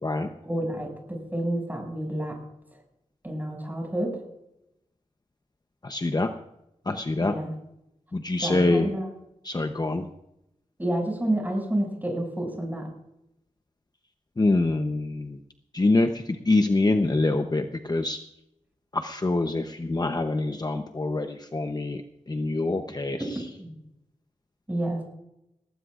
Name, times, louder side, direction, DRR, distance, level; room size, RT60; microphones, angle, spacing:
voice 1, 0.4-2.4 3.2-4.2 7.2-7.5 8.4-9.1 10.8-12.9 23.6-23.7 24.7-25.0, right 1 dB, 15° right, 1 dB, 6.4 m, -29 dB
voice 2, 5.8-6.3 6.9-7.3 8.1-8.9 9.4-10.1 14.4-15.4 15.7-18.2 18.9-22.0 22.3-23.2, left 2 dB, 30° left, 6 dB, 0.8 m, -25 dB
19.0 x 17.5 x 2.5 m, 0.83 s
wide cardioid pair, 90°, 13 cm